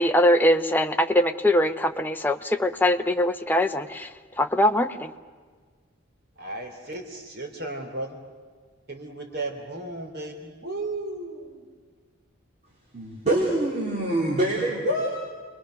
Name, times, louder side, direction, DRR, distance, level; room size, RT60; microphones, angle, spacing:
voice 1, 0.0-4.1 4.4-5.1, left 1 dB, 10° left, 6 dB, 0.7 m, -22 dB
voice 2, 6.3-8.2 8.9-11.7, right 2 dB, 50° right, 2 dB, 3.1 m, -35 dB
voice 3, 12.9-15.1, right 1 dB, 35° right, -4 dB, 3.4 m, -25 dB
29.0 x 21.5 x 6.4 m, 1.6 s
head